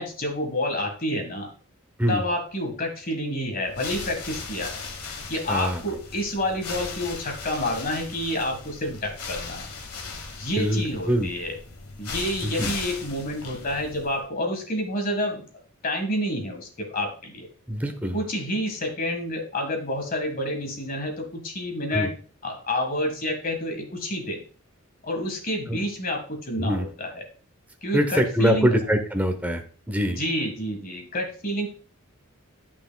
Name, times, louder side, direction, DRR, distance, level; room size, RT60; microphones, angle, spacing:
voice 1, 0.0-1.5 2.1-4.8 5.3-9.7 10.4-11.6 12.0-15.4 15.8-17.5 18.1-22.1 22.4-24.4 25.0-27.2 27.8-28.7 30.1-31.7, left 1 dB, 40° left, 3 dB, 1.7 m, -29 dB
sound 1, 3.6-14.3, left 4 dB, 90° left, 1.3 m, -38 dB
voice 2, 5.5-5.8 10.6-11.3 12.4-12.7 17.7-18.2 21.9-22.1 25.7-25.8 26.6-26.9 27.9-30.2, equal, 5° right, 4 dB, 0.8 m, -24 dB
9.3 x 6.0 x 2.3 m, 0.41 s
head